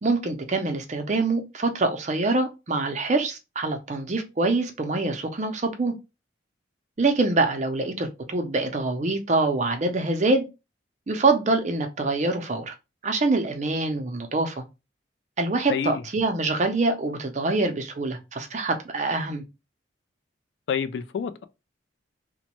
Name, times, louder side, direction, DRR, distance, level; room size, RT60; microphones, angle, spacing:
voice 1, 0.0-5.9 7.0-10.4 11.1-12.7 13.0-14.6 15.4-19.4, right 3 dB, 35° right, 0.5 m, -25 dB
voice 2, 15.7-16.0 20.7-21.4, left 6 dB, 65° left, 0.3 m, -28 dB
3.0 x 2.1 x 2.9 m
head